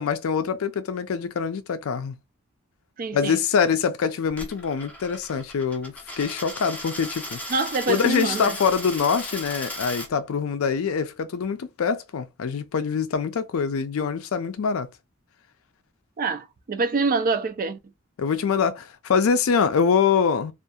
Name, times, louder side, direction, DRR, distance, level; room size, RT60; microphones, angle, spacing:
voice 1, 0.0-2.2 3.1-7.4 7.9-14.9 18.2-20.5, left 6 dB, 70° left, 0.4 m, -24 dB
voice 2, 3.0-3.4 7.5-8.6 16.2-17.8, right 3 dB, 40° right, 0.4 m, -25 dB
Coin (dropping), 4.3-10.1, left 1 dB, 5° left, 0.6 m, -36 dB
2.7 x 2.4 x 2.3 m
head